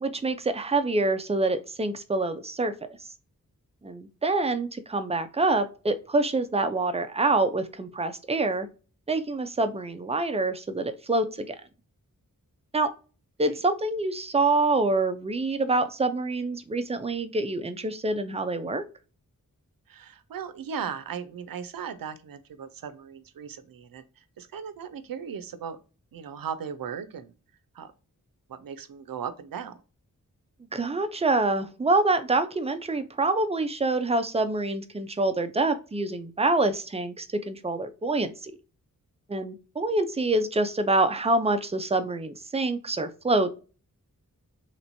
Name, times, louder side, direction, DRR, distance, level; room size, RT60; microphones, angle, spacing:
voice 1, 0.0-2.7 3.8-8.7 9.1-11.6 12.7-12.9 13.4-18.8 30.7-38.5 39.3-43.5, right 2 dB, 20° right, 9 dB, 0.4 m, -26 dB
voice 2, 19.9-25.8 26.1-27.3 27.7-27.9 28.5-29.8, right 7 dB, 80° right, 12 dB, 0.5 m, -37 dB
3.2 x 3.0 x 2.6 m, 0.35 s
wide cardioid pair, 70°, 34 cm